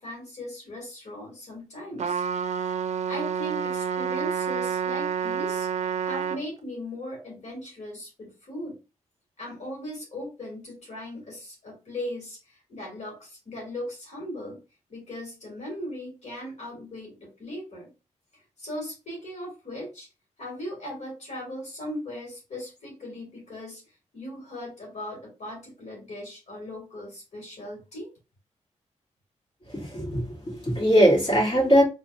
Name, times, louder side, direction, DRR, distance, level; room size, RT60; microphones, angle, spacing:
voice 1, 0.0-2.2 2.7-8.8 9.4-14.6 14.9-17.9 18.3-20.1 20.4-28.1, left 1 dB, 70° left, 2.2 m, -38 dB
Trumpet, 2.0-6.4, right 7 dB, 65° right, 0.4 m, -28 dB
voice 2, 29.7-31.8, equal, 45° left, 2.4 m, -21 dB
4.4 x 3.2 x 2.5 m
wide cardioid pair, 115°, 12 cm